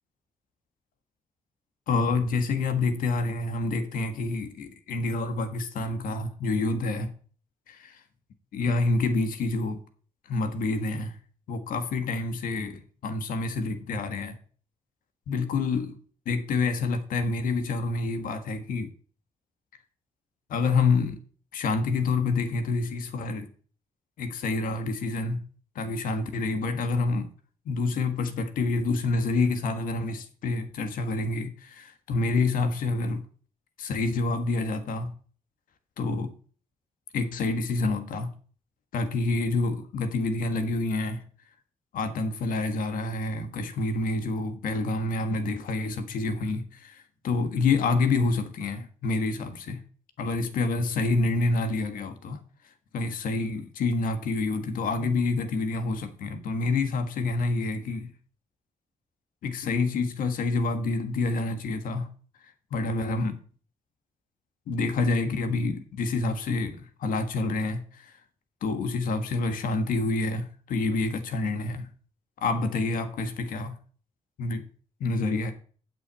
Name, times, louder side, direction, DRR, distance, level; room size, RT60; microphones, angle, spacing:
voice 1, 1.9-7.1 7.7-8.0 8.5-9.8 10.3-11.1 11.5-14.3 15.3-16.0 16.2-18.9 20.5-21.2 21.5-23.5 24.2-25.4 25.7-27.3 27.6-33.2 33.8-35.1 36.0-36.3 37.1-38.3 38.9-41.2 41.9-49.8 50.2-52.4 52.9-58.1 59.4-62.1 62.7-63.4 64.7-68.1 68.6-71.9 72.4-73.7 74.4-74.7 75.0-75.5, left 3 dB, 90° left, 1.6 m, -27 dB
8.2 x 6.3 x 8.3 m
cardioid pair, 85°, 14 cm